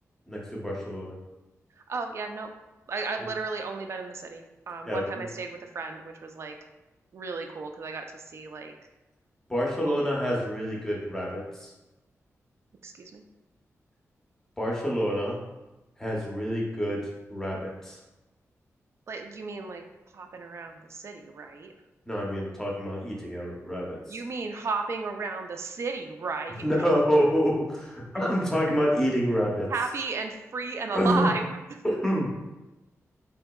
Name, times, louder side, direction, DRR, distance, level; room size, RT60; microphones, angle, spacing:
voice 1, 0.3-1.2 4.9-5.3 9.5-11.7 14.6-15.4 16.0-17.0 17.3-18.0 22.1-24.0 26.6-29.7 30.9-31.3 31.8-32.3, equal, 10° left, -3 dB, 0.6 m, -27 dB
voice 2, 1.9-2.5 2.9-6.5 7.1-8.7 9.8-10.0 12.8-13.2 19.1-19.8 20.1-21.7 24.1-26.6 29.7-31.6, right 4 dB, 55° right, 5 dB, 0.3 m, -34 dB
3.5 x 2.8 x 2.2 m, 1.0 s
wide cardioid pair, 130°, 5 cm